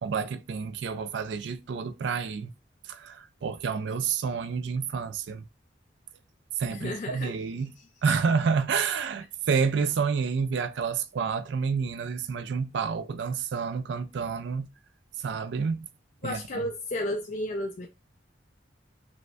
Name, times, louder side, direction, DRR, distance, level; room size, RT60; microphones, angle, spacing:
voice 1, 0.0-2.5 2.8-5.4 6.6-7.7 8.0-14.7 15.2-15.9 16.2-16.4, right 5 dB, 75° right, 0.3 m, -29 dB
voice 2, 6.7-7.4 7.8-7.9 16.2-17.9, left 1 dB, 40° left, 0.4 m, -33 dB
5.0 x 2.1 x 2.2 m
head